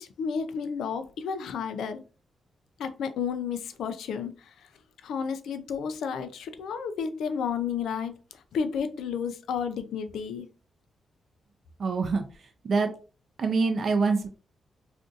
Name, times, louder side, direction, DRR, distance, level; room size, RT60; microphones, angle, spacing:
voice 1, 0.0-2.0 2.8-4.5 5.0-10.5, left 6 dB, 90° left, 9 dB, 0.4 m, -32 dB
voice 2, 11.8-12.2 12.6-12.9 13.4-14.3, right 4 dB, 55° right, 5 dB, 0.5 m, -25 dB
2.5 x 2.4 x 3.7 m, 0.36 s
cardioid pair, 90°, 0 cm